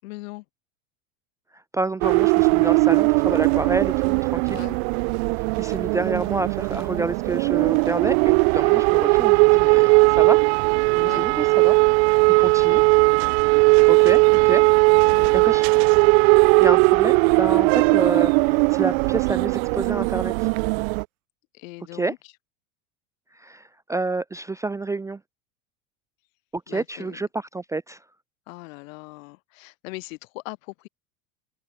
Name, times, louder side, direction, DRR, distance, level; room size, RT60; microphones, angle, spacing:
voice 1, 0.0-0.4 4.5-4.8 8.6-8.9 11.0-11.3 12.5-12.8 15.1-15.4 21.5-22.2 26.7-27.2 28.5-30.9, left 23 dB, 70° left, 7.6 m, -40 dB
voice 2, 1.5-4.6 5.6-10.4 11.0-12.8 13.9-14.6 15.3-16.0 16.6-20.3 21.9-22.1 23.3-25.2 26.5-28.0, right 3 dB, 10° right, 0.6 m, -29 dB
sound 1, 2.0-21.0, right 35 dB, 55° right, 0.5 m, -18 dB
sound 2, 13.9-15.5 16.1-18.7 19.2-21.0, right 19 dB, 80° right, 5.2 m, -52 dB
open air
supercardioid pair, 145°, 41 cm